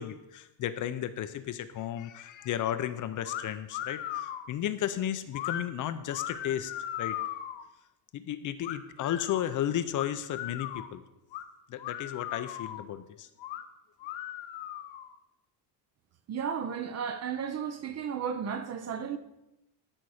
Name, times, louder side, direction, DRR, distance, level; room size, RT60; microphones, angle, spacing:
voice 1, 0.0-6.7 7.0-7.2 8.1-11.0 11.7-13.3, left 11 dB, 45° left, 0.5 m, -34 dB
sound 1, 3.2-3.4 3.7-4.5 5.3-5.6 6.1-7.6 8.6-9.4 9.9-10.9 11.3-11.4 11.8-12.8 13.4-13.6 14.0-15.1, left 12 dB, 75° left, 1.0 m, -37 dB
voice 2, 16.3-19.2, right 7 dB, 35° right, 0.6 m, -34 dB
13.0 x 5.4 x 6.3 m
cardioid pair, 170°, 46 cm